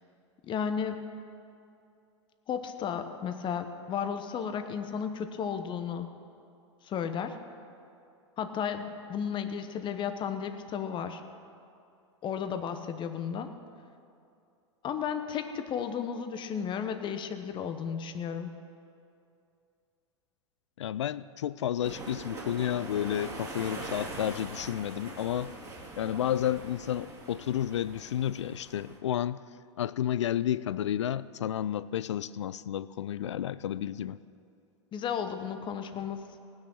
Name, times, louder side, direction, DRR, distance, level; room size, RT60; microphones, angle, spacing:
voice 1, 0.4-1.0 2.5-6.1 6.8-7.4 8.4-11.2 12.2-13.5 14.8-18.5 34.9-36.3, left 7 dB, 30° left, 8 dB, 1.0 m, -33 dB
voice 2, 20.8-25.5 26.0-29.4 29.8-34.2, left 11 dB, 75° left, 18 dB, 0.4 m, -31 dB
sound 1, 21.8-29.0, right 2 dB, 20° right, 2.5 m, -42 dB
19.0 x 6.4 x 6.2 m, 2.6 s
figure-of-eight pair, 90°, 15 cm